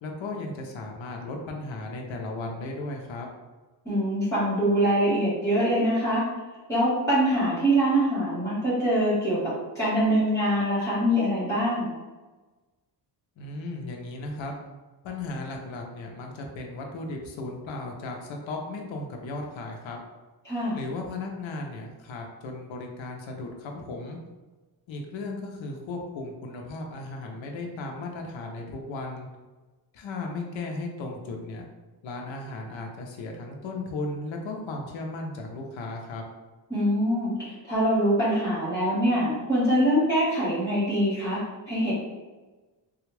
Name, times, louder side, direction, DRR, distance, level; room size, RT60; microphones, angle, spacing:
voice 1, 0.0-3.3 13.4-14.5 15.0-20.0 20.7-24.2 24.9-29.3 29.9-31.7 32.0-36.2, left 2 dB, 80° left, 1 dB, 0.7 m, -36 dB
voice 2, 3.8-6.2 6.7-9.4 9.7-11.9 20.4-20.8 36.7-41.4 41.7-41.9, equal, 5° left, -13 dB, 1.4 m, -24 dB
3.3 x 2.3 x 3.1 m, 1.2 s
cardioid pair, 110°, 45 cm